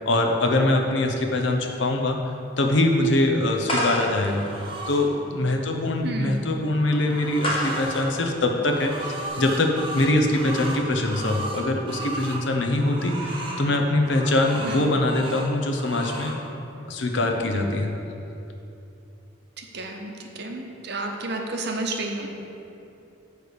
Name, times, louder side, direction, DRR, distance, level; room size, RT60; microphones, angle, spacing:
voice 1, 0.1-2.2 2.6-4.5 4.9-16.4 16.8-17.9, left 1 dB, 65° left, 3 dB, 0.8 m, -23 dB
sound 1, 3.7-9.3, equal, 30° left, 1.2 m, -31 dB
sound 2, 4.3-5.1 6.5-8.0 8.5-12.4 12.8-13.6 14.0-15.5 15.8-16.4, right 2 dB, 25° right, 1.0 m, -36 dB
voice 2, 6.0-6.4 14.6-14.8 19.6-22.3, right 2 dB, 55° right, 2 dB, 0.8 m, -31 dB
9.5 x 3.3 x 6.6 m, 2.8 s
head